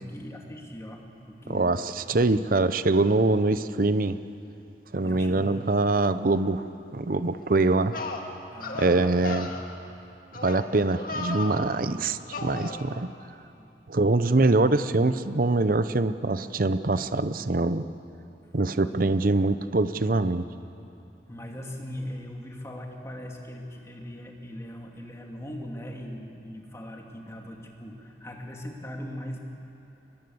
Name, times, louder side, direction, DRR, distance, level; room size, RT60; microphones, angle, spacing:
voice 1, 0.0-1.8 5.0-5.6 8.5-9.2 9.6-9.7 11.9-12.2 13.4-13.7 14.3-14.7 18.8-19.1 21.3-29.4, equal, 15° left, 0 dB, 2.4 m, -40 dB
voice 2, 1.5-4.2 4.9-6.7 6.9-7.9 8.8-9.5 10.3-13.1 13.9-17.9 18.5-20.5, right 2 dB, 50° right, 12 dB, 0.7 m, -24 dB
sound 1, 7.4-7.5 7.9-8.2 8.6-8.9 9.2-9.6 10.3-10.6 10.9-11.6 12.3-12.8, left 3 dB, 55° left, 2.0 m, -34 dB
24.0 x 20.5 x 7.9 m, 2.8 s
head